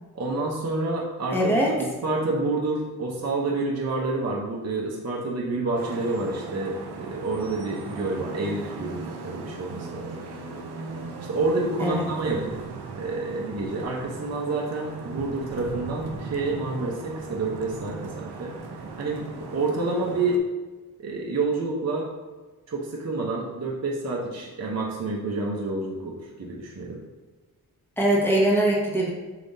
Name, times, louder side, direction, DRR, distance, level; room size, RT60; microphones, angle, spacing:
voice 1, 0.1-10.1 11.2-12.5 12.9-18.5 19.0-20.4 21.0-22.1 22.7-27.0, right 3 dB, 40° right, -2 dB, 0.8 m, -28 dB
voice 2, 1.3-1.8 11.8-12.0 28.0-29.1, right 1 dB, 5° left, -4 dB, 1.3 m, -22 dB
Vehicle horn car horn honking / Traffic noise roadway noise, 5.8-20.4, right 3 dB, 85° right, 0.6 m, -38 dB
4.8 x 3.4 x 2.7 m, 1.3 s
cardioid pair, 55°, 38 cm